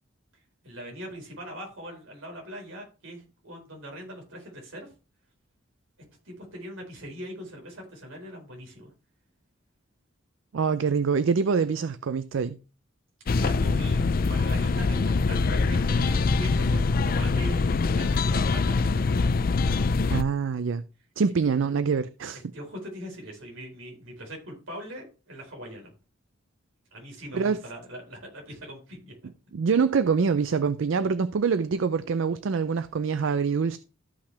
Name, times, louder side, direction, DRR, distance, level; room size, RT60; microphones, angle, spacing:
voice 1, 0.6-4.9 6.2-8.9 13.3-18.8 21.4-21.5 22.3-25.9 26.9-29.1, equal, 85° right, 4.3 m, -41 dB
voice 2, 10.5-12.6 20.1-20.8 21.2-22.4 27.3-27.6 29.5-33.8, right 5 dB, 70° right, 0.4 m, -25 dB
sound 1, 13.3-20.2, left 4 dB, 45° left, 0.4 m, -24 dB
13.5 x 5.7 x 3.3 m
head